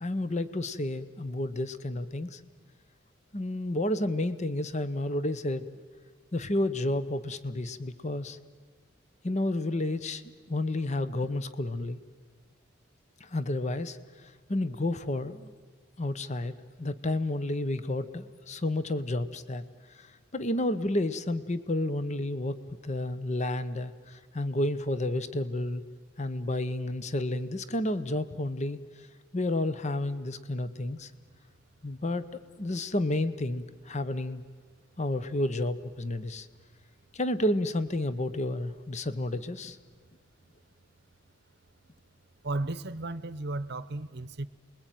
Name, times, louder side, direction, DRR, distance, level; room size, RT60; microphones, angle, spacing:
voice 1, 0.0-2.4 3.3-5.7 6.3-8.4 9.2-10.2 10.5-12.0 13.2-14.0 14.5-15.5 16.0-19.6 19.9-22.6 22.8-25.8 26.2-28.8 29.3-31.1 31.8-32.3 32.6-34.4 35.0-36.5 37.1-39.8, left 1 dB, 35° left, 13 dB, 0.9 m, -31 dB
voice 2, 42.4-44.5, right 2 dB, 55° right, 15 dB, 0.9 m, -34 dB
28.5 x 21.5 x 9.2 m, 1.5 s
head